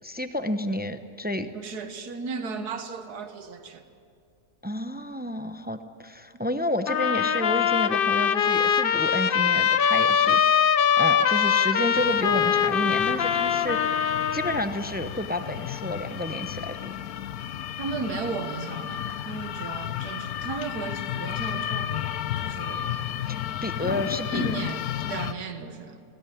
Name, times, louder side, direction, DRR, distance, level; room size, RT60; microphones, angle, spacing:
voice 1, 0.0-1.5 4.6-10.7 11.0-14.0 14.3-16.9 23.3-24.5, left 1 dB, 10° right, 8 dB, 0.5 m, -30 dB
voice 2, 1.5-3.8 6.3-6.4 17.8-22.9 24.3-26.0, right 4 dB, 90° right, 8 dB, 1.9 m, -35 dB
sound 1, 6.9-14.6, left 8 dB, 50° left, 0.7 m, -22 dB
sound 2, 11.9-25.3, left 10 dB, 75° left, 1.2 m, -33 dB
19.5 x 17.0 x 9.9 m, 2.4 s
omnidirectional pair, 1.6 m